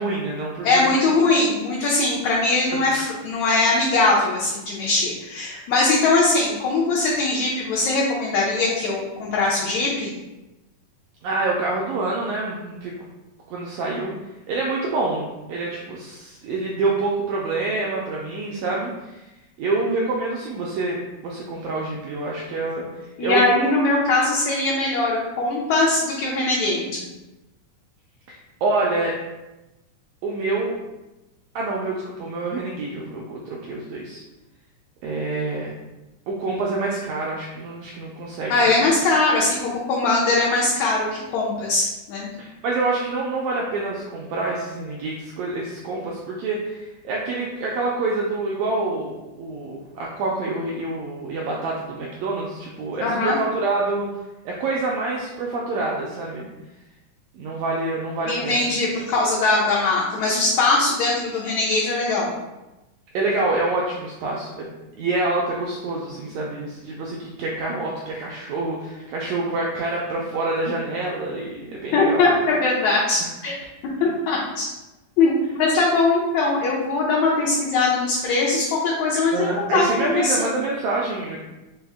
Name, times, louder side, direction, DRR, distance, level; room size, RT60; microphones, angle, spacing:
voice 1, 0.0-1.0 11.2-12.9 13.5-14.1 14.5-19.3 19.6-21.0 21.2-23.4 28.3-29.1 30.2-30.8 31.5-34.2 35.0-35.7 36.3-38.9 42.4-54.1 54.4-56.5 57.3-58.7 63.1-64.7 65.0-72.4 73.2-73.3 79.3-81.4, right 3 dB, 85° right, -3 dB, 1.5 m, -27 dB
voice 2, 0.6-10.1 23.2-27.0 38.5-42.3 53.0-53.4 58.3-62.4 71.9-73.6 74.0-74.7 75.2-80.5, left 3 dB, 75° left, -5 dB, 1.7 m, -21 dB
5.4 x 2.0 x 3.4 m, 1.0 s
omnidirectional pair, 3.6 m